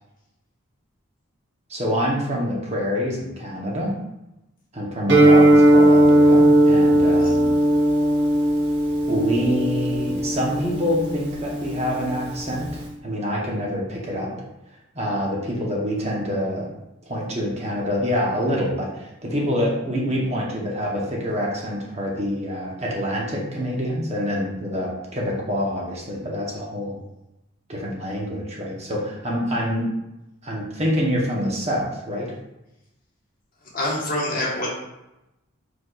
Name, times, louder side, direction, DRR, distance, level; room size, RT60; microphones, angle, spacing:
voice 1, 1.7-3.9 4.7-7.6 9.1-14.3 14.9-16.7 17.0-27.0 27.7-29.9 30.4-32.3, equal, 30° right, -3 dB, 0.9 m, -26 dB
Guitar, 5.1-12.8, right 1 dB, 55° right, 1.0 m, -17 dB
voice 2, 33.7-34.7, left 1 dB, 45° left, -5 dB, 1.2 m, -25 dB
4.7 x 4.4 x 2.3 m, 0.92 s
head